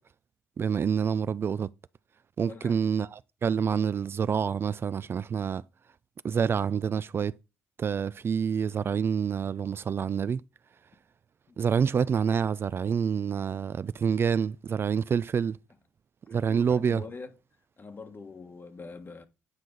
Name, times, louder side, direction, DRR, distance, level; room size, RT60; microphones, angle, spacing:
voice 1, 0.6-1.7 2.4-5.6 6.2-7.3 7.8-10.4 11.6-15.6 16.3-17.0, right 7 dB, 40° right, 0.4 m, -27 dB
voice 2, 2.4-2.8 11.5-11.6 16.5-17.4 17.8-19.3, left 4 dB, 35° left, 1.5 m, -44 dB
9.6 x 4.7 x 3.9 m
supercardioid pair, 65°, 6 cm